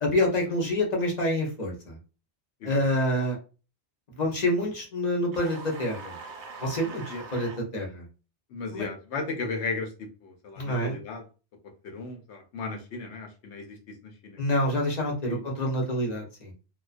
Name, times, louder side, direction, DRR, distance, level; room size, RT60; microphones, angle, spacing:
voice 1, 0.0-2.0 2.6-3.4 4.2-6.2 6.6-7.0 7.3-8.1 8.7-8.9 10.6-11.0 14.4-16.5, left 1 dB, 45° left, -1 dB, 0.7 m, -27 dB
sound 1, 5.3-7.6, right 4 dB, 55° right, 0.6 m, -42 dB
voice 2, 8.5-9.9 10.2-11.2 11.8-14.6 15.0-15.5, left 3 dB, 80° left, 4 dB, 0.9 m, -36 dB
2.3 x 2.2 x 2.4 m, 0.34 s
omnidirectional pair, 1.1 m